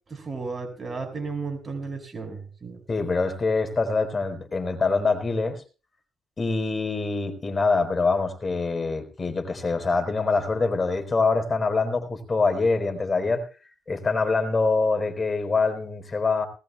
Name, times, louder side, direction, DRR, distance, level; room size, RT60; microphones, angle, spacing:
voice 1, 0.1-2.8, right 4 dB, 30° right, 5 dB, 5.5 m, -34 dB
voice 2, 2.9-5.6 6.4-13.4 13.9-16.5, left 3 dB, 30° left, 7 dB, 4.2 m, -24 dB
19.5 x 19.0 x 2.3 m, 0.36 s
cardioid pair, 90°, 0 cm